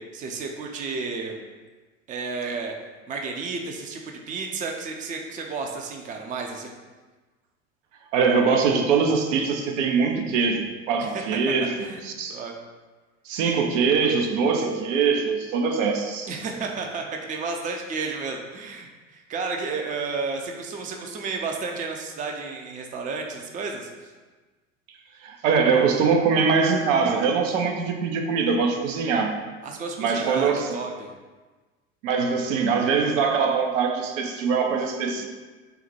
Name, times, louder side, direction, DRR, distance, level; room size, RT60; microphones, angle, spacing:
voice 1, 0.0-1.4 2.1-2.7 3.1-6.7 11.1-11.2 11.8-12.0 12.3-12.6 16.3-24.1 29.6-31.1, right 4 dB, 20° right, 2 dB, 0.4 m, -32 dB
voice 2, 8.1-12.4 13.3-16.3 25.2-29.4 30.0-30.8 32.0-35.3, right 5 dB, 70° right, 4 dB, 0.6 m, -23 dB
3.9 x 2.1 x 4.2 m, 1.3 s
hypercardioid pair, 75°, 40 cm